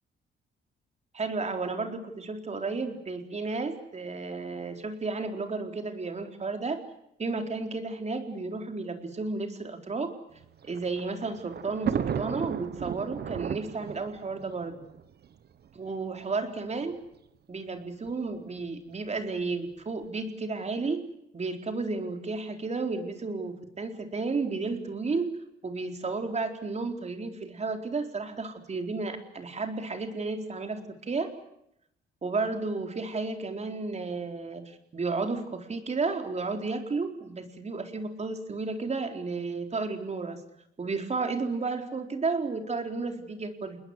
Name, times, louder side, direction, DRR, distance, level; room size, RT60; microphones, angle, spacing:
voice 1, 1.1-6.8 7.2-10.1 10.6-14.8 15.7-16.9 17.5-21.0 21.3-25.3 25.6-31.3 32.2-40.4 40.8-43.8, right 3 dB, 35° right, 5 dB, 4.2 m, -32 dB
Thunder, 10.4-15.7 16.6-16.7 16.9-17.0 18.1-18.4, right 8 dB, 55° right, 1.4 m, -35 dB
28.5 x 21.0 x 8.1 m, 0.78 s
cardioid pair, 90°, 20 cm